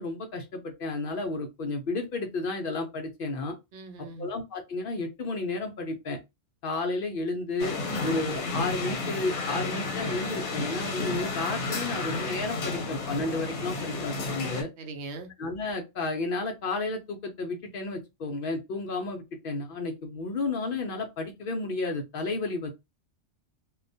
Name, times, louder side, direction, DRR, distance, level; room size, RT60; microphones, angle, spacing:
voice 1, 0.0-3.5 4.2-6.2 6.6-7.8 8.0-14.7 15.4-22.7, left 3 dB, 60° left, 0.6 m, -32 dB
voice 2, 3.7-4.3 8.0-8.2 14.8-15.3, right 3 dB, 75° right, 0.8 m, -41 dB
sound 1, 7.6-14.6, left 3 dB, 90° left, 1.0 m, -32 dB
2.3 x 2.1 x 2.5 m
omnidirectional pair, 1.2 m